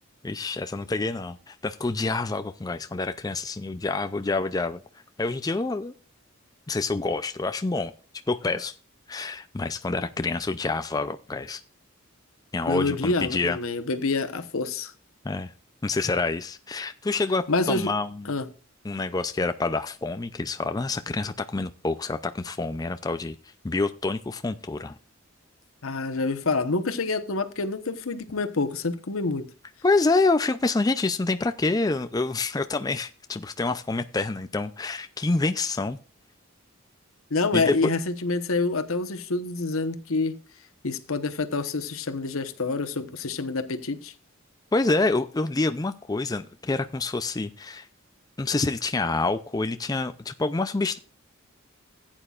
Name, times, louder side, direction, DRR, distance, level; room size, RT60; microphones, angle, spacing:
voice 1, 0.2-4.8 5.2-5.9 6.7-7.9 8.3-8.7 9.1-11.6 12.5-13.6 15.2-15.5 15.8-18.3 18.8-23.4 23.6-24.9 29.8-36.0 37.5-37.9 44.7-47.9 48.4-51.0, left 3 dB, 20° left, 0.4 m, -27 dB
voice 2, 12.7-14.9 17.5-17.9 18.3-18.5 25.8-29.5 37.3-40.4 40.8-44.1, left 3 dB, 80° left, 1.0 m, -27 dB
15.5 x 8.9 x 2.4 m
head